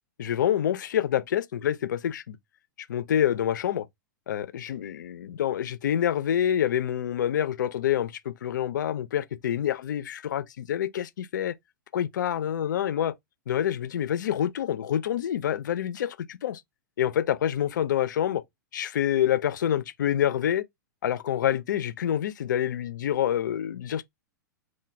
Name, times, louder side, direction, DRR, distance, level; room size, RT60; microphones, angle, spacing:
voice 1, 0.2-2.4 2.9-3.9 4.3-11.6 11.9-13.1 13.5-16.6 17.0-18.4 18.7-20.6 21.0-24.0, left 10 dB, 65° left, 0.4 m, -27 dB
3.0 x 2.2 x 3.1 m
figure-of-eight pair, 105°, 11 cm